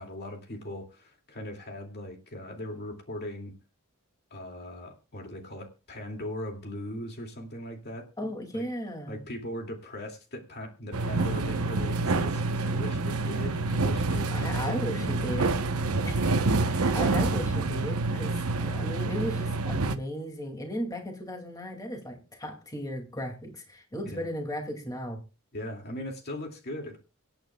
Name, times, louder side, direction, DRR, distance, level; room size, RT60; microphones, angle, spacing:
voice 1, 0.0-3.5 4.3-8.7 9.1-15.1 24.1-24.3 25.5-27.0, left 1 dB, 50° left, 3 dB, 2.4 m, -39 dB
voice 2, 8.2-9.2 14.3-15.6 16.0-25.2, equal, 15° left, 3 dB, 2.4 m, -36 dB
sound 1, 10.9-19.9, right 3 dB, 80° right, 1.0 m, -27 dB
25.5 x 9.0 x 2.3 m, 0.32 s
head